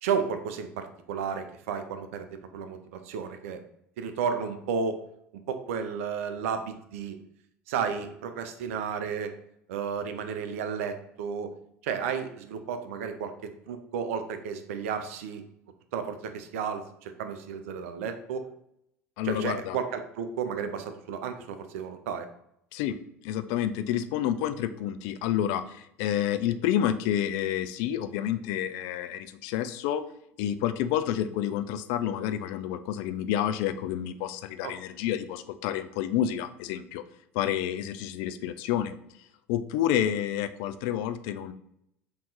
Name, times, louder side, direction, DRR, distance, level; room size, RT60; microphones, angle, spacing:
voice 1, 0.0-2.3 2.5-3.6 4.0-5.0 5.5-7.2 7.7-9.3 9.7-11.5 11.8-15.4 15.9-18.5 19.2-22.3 34.6-34.7, right 6 dB, 70° right, 8 dB, 0.5 m, -32 dB
voice 2, 19.2-19.8 22.7-23.0 23.2-30.0 30.4-37.0 37.3-38.9 39.5-41.5, left 10 dB, 60° left, 11 dB, 0.3 m, -29 dB
3.7 x 2.9 x 3.8 m, 0.74 s
hypercardioid pair, 70°, 8 cm